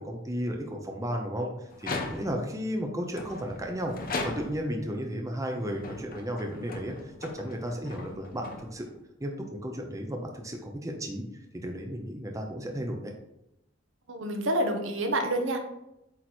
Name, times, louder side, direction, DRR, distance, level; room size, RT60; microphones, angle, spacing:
voice 1, 0.0-1.5 1.8-3.9 4.2-8.9 9.2-11.2 11.5-13.1, equal, 15° right, 2 dB, 0.8 m, -34 dB
sound 1, 1.7-2.5 3.1-4.8 5.5-9.0, left 3 dB, 45° left, 0.9 m, -38 dB
voice 2, 14.1-15.6, right 1 dB, 65° right, 4 dB, 1.0 m, -28 dB
8.6 x 3.1 x 4.3 m, 0.86 s
head